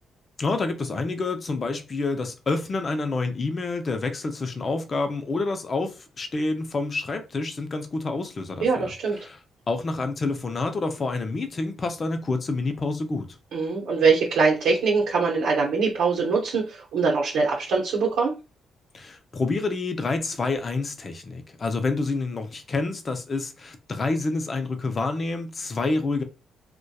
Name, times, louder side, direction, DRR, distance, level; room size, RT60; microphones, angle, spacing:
voice 1, 0.4-8.9 9.2-9.4 9.7-13.4 18.9-26.2, left 3 dB, 35° left, 0.5 m, -28 dB
voice 2, 8.6-9.2 13.5-18.3, right 4 dB, 80° right, 0.7 m, -23 dB
2.7 x 2.1 x 2.2 m
cardioid pair, 90°, 0 cm